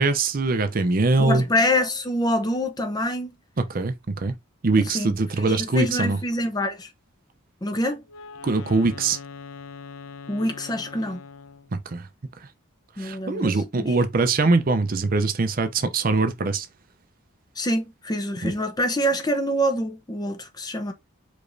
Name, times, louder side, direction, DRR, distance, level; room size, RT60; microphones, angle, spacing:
voice 1, 0.0-1.4 3.6-4.3 4.6-6.2 8.4-9.2 11.7-12.1 13.0-16.7 18.4-18.5, right 3 dB, 45° right, 0.5 m, -22 dB
voice 2, 1.2-3.3 4.9-6.9 7.6-8.0 10.3-11.2 13.0-13.9 17.6-20.9, equal, 20° left, 0.6 m, -26 dB
Wind instrument woodwind instrument, 8.1-11.8, left 5 dB, 90° left, 0.6 m, -41 dB
5.0 x 3.1 x 2.6 m
head